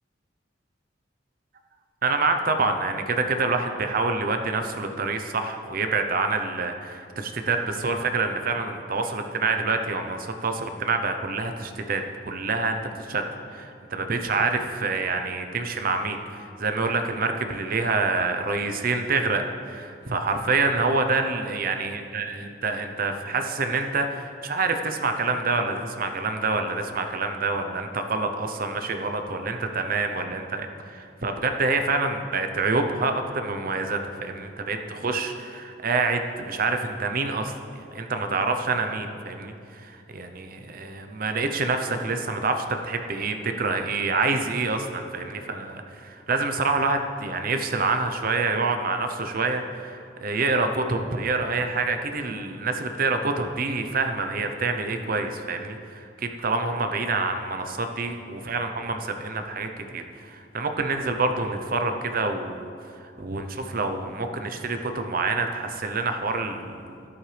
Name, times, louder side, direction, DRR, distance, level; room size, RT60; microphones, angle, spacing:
voice 1, 2.0-12.8 13.1-13.2 13.5-16.2 16.6-62.7 63.2-67.0, right 3 dB, 50° right, 6 dB, 0.8 m, -27 dB
12.5 x 10.5 x 3.4 m, 2.5 s
head